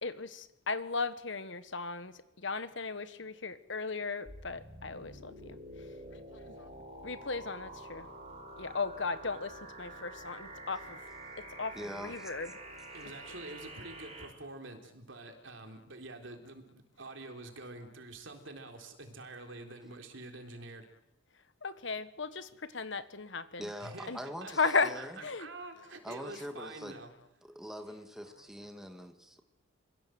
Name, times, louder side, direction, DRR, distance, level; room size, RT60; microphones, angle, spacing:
voice 1, 0.0-5.3 6.1-6.7 7.0-8.1 8.6-11.0 11.4-12.5 21.6-23.7 24.1-24.2 24.6-24.9 25.2-25.5, left 4 dB, 60° left, 12 dB, 1.4 m, -36 dB
sound 1, 4.3-14.3, right 1 dB, 30° right, 5.7 m, -48 dB
voice 2, 11.7-12.3 23.6-25.2 26.0-27.0 27.4-29.4, equal, ahead, 5 dB, 1.9 m, -43 dB
voice 3, 12.9-20.9 23.8-24.1 24.4-24.5 24.9-27.1, right 2 dB, 65° right, 4 dB, 3.7 m, -47 dB
26.5 x 23.0 x 7.8 m, 0.87 s
head